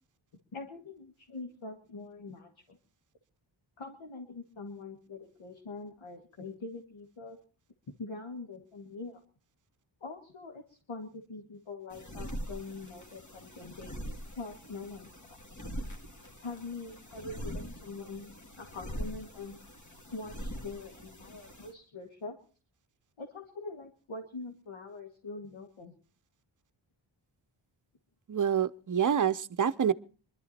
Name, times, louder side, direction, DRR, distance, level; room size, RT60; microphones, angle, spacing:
voice 1, 0.5-2.8 3.8-7.4 8.0-9.2 10.0-14.0 14.4-15.4 16.4-19.6 20.1-22.4 23.2-25.9, left 3 dB, 75° left, 2.2 m, -43 dB
sound 1, 11.9-21.7, equal, 35° left, 2.3 m, -43 dB
voice 2, 28.3-29.9, right 8 dB, 40° right, 0.8 m, -27 dB
21.5 x 12.5 x 4.3 m
cardioid pair, 50°, 49 cm